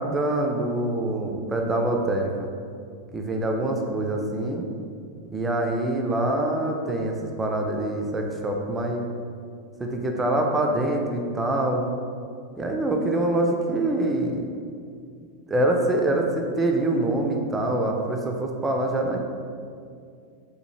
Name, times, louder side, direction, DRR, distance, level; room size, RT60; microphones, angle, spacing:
voice 1, 0.0-2.5 3.1-4.7 5.3-9.0 9.8-11.9 12.6-14.4 15.5-19.2, right 1 dB, 15° right, 1 dB, 0.3 m, -25 dB
2.8 x 2.1 x 3.0 m, 2.3 s
figure-of-eight pair, 90°, 0 cm